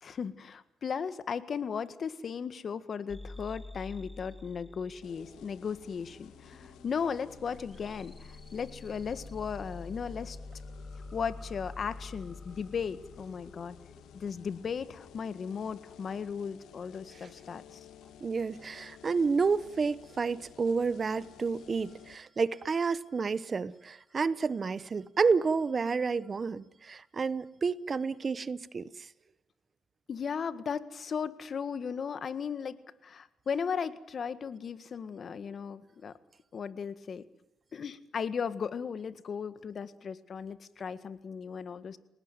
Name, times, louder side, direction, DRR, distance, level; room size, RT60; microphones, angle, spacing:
voice 1, 0.0-10.4 11.1-13.8 14.1-17.8 30.1-36.1 36.5-37.2 37.7-42.0, left 6 dB, 50° left, 1.7 m, -36 dB
sound 1, 3.1-15.2, left 2 dB, 5° left, 1.4 m, -48 dB
sound 2, 5.0-22.2, left 10 dB, 85° left, 2.1 m, -53 dB
voice 2, 18.2-29.1, right 5 dB, 35° right, 1.0 m, -30 dB
29.5 x 18.5 x 9.4 m
cardioid pair, 90°, 0 cm